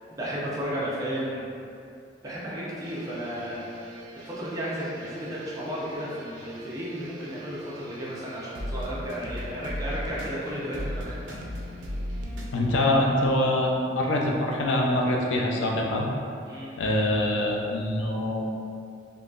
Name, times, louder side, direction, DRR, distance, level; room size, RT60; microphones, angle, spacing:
voice 1, 0.0-1.4 2.2-3.7 4.2-11.4 16.4-16.7, equal, 20° right, -7 dB, 0.5 m, -33 dB
sound 1, 2.8-12.6, equal, 80° right, 0.4 m, -38 dB
voice 2, 12.5-16.1 16.8-18.5, left 1 dB, 85° left, -1 dB, 0.4 m, -24 dB
3.5 x 2.2 x 2.4 m, 2.5 s
head